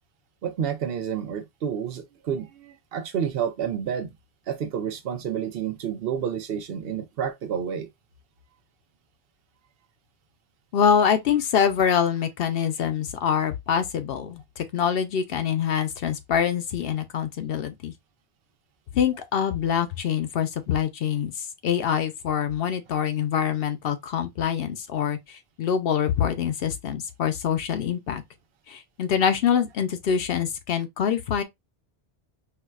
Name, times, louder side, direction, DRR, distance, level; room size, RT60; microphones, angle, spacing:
voice 1, 0.4-4.1 4.5-7.9, right 8 dB, 70° right, 0.8 m, -29 dB
voice 2, 10.7-17.9 18.9-21.3 21.6-28.2 28.7-31.4, left 8 dB, 70° left, 0.8 m, -25 dB
4.6 x 2.2 x 2.3 m
omnidirectional pair, 1.1 m